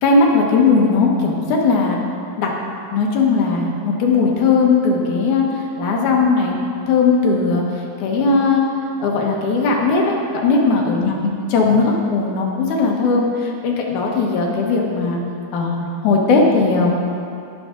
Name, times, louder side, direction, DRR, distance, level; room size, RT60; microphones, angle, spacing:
voice 1, 0.0-2.0 2.4-2.5 2.9-6.6 6.9-7.6 8.0-8.6 9.0-10.2 10.4-11.1 11.5-15.2 15.5-16.9, left 4 dB, 80° left, 0 dB, 2.7 m, -17 dB
17.0 x 6.9 x 3.8 m, 2.5 s
omnidirectional pair, 3.4 m